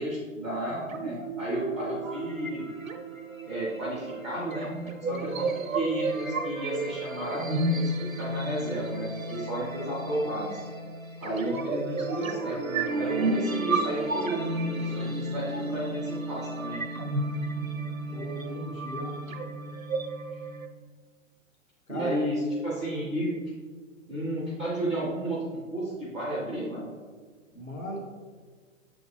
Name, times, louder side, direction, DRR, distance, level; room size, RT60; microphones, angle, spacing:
voice 1, 0.0-2.7 3.4-4.7 5.0-7.9 8.2-10.5 11.2-16.8 21.9-22.4 22.6-23.3 24.1-26.9, right 1 dB, ahead, -8 dB, 0.3 m, -32 dB
sound 1, 0.7-20.7, right 2 dB, 85° right, 0.8 m, -32 dB
voice 2, 18.1-19.1 21.9-22.2 27.5-28.0, equal, 85° left, -3 dB, 1.5 m, -37 dB
7.2 x 3.5 x 4.1 m, 1.5 s
figure-of-eight pair, 115°, 40 cm